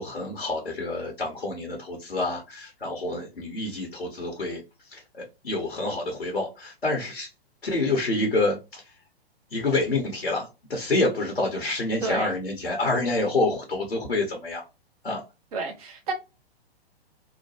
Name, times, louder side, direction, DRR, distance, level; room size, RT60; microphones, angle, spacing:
voice 1, 0.0-4.6 4.9-7.3 7.6-8.8 9.5-14.6 15.0-15.2, left 2 dB, 80° left, 0.9 m, -27 dB
voice 2, 12.0-12.3 15.5-16.1, right 3 dB, 35° right, 0.9 m, -30 dB
2.9 x 2.1 x 2.8 m
figure-of-eight pair, 115°, 31 cm